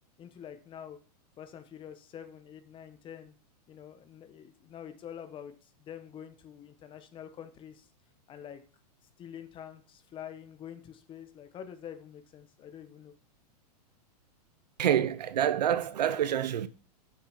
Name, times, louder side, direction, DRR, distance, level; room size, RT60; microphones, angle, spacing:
voice 1, 0.2-1.0 1.4-3.3 3.7-7.9 8.3-8.6 9.2-13.1, left 9 dB, 25° left, 1.1 m, -46 dB
voice 2, 14.8-16.7, right 10 dB, 85° right, 0.7 m, -27 dB
6.6 x 6.4 x 5.5 m
hypercardioid pair, 135°, 21 cm